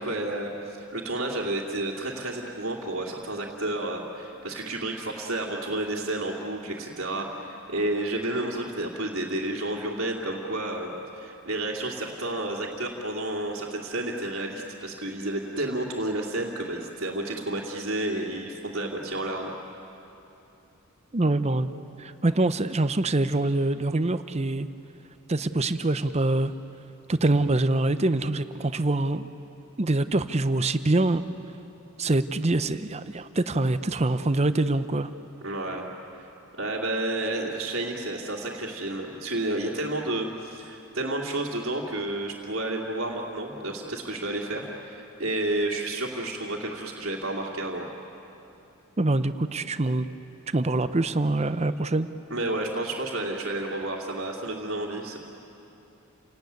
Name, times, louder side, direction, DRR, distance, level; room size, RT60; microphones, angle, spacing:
voice 1, 0.0-19.5 35.4-35.9 36.2-36.3 36.6-47.9 52.3-55.2, right 1 dB, 60° right, -5 dB, 2.6 m, -31 dB
voice 2, 21.1-21.7 22.0-24.7 25.3-26.5 27.1-29.3 29.8-31.2 32.0-35.1 49.0-50.1 50.5-52.1, right 2 dB, 30° right, 12 dB, 0.7 m, -24 dB
29.5 x 18.5 x 9.4 m, 2.9 s
head